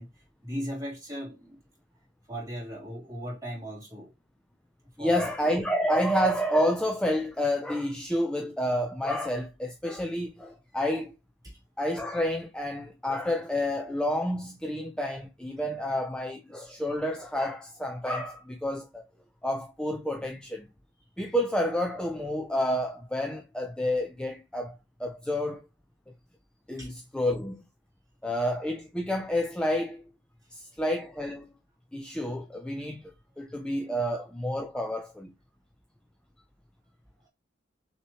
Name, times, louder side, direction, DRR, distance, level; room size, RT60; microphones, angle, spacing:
voice 1, 0.0-1.6 2.2-4.1 5.0-5.3 11.4-11.6 21.0-21.1 26.8-26.9 30.4-30.8 33.3-33.4 37.2-37.3, equal, 20° right, 2.4 m, -38 dB
voice 2, 5.0-11.1 11.8-19.0 19.4-20.7 21.2-24.7 25.0-25.6 26.7-27.6 28.2-30.0 30.5-31.5 31.9-35.3, equal, 5° left, 0.4 m, -29 dB
6.2 x 2.9 x 2.9 m
head